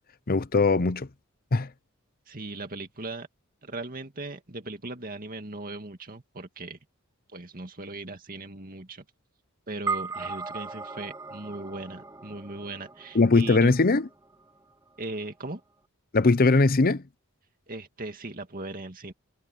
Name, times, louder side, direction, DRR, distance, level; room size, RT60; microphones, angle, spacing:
voice 1, 0.3-1.1 1.5-1.7 13.1-14.1 16.1-17.0, left 3 dB, 45° left, 0.7 m, -20 dB
voice 2, 2.3-3.3 3.6-6.8 7.3-9.0 9.7-13.7 15.0-15.6 17.7-19.1, right 2 dB, 40° right, 2.2 m, -38 dB
sound 1, 9.9-14.4, right 4 dB, 15° right, 0.7 m, -37 dB
head